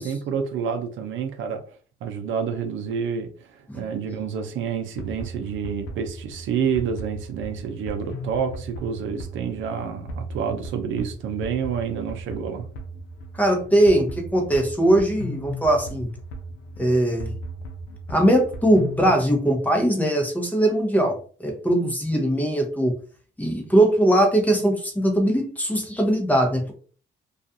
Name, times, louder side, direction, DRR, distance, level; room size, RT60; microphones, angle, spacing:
voice 1, 0.0-1.6 2.0-12.7, right 7 dB, 75° right, 0.5 m, -28 dB
sound 1, 5.0-19.2, right 1 dB, 90° left, 0.6 m, -37 dB
voice 2, 13.3-16.1 16.8-17.3 18.1-23.0 23.4-26.7, right 1 dB, 10° left, 0.7 m, -20 dB
2.4 x 2.3 x 2.6 m
cardioid pair, 90°, 20 cm